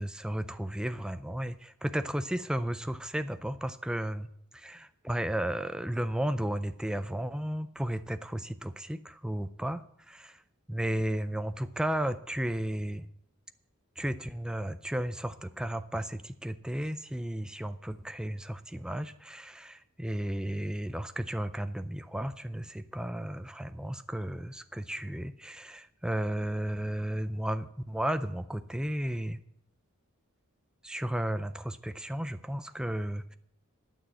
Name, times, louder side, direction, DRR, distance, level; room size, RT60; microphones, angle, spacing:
voice 1, 0.0-4.3 4.6-10.4 10.7-13.1 14.0-29.4 30.8-33.3, right 1 dB, 5° right, 11 dB, 0.3 m, -34 dB
12.0 x 6.3 x 7.6 m, 0.72 s
head